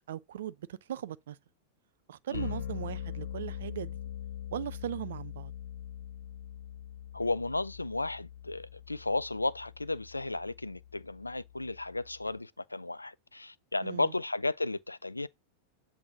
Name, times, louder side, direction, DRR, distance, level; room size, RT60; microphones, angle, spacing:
voice 1, 0.1-1.4 2.1-4.0 4.5-5.5 13.8-14.1, right 11 dB, 60° right, 0.3 m, -38 dB
sound 1, 2.3-12.4, left 10 dB, 60° left, 0.9 m, -42 dB
voice 2, 7.1-15.3, left 2 dB, 85° left, 0.3 m, -34 dB
7.7 x 2.6 x 5.8 m
figure-of-eight pair, 90°, 0 cm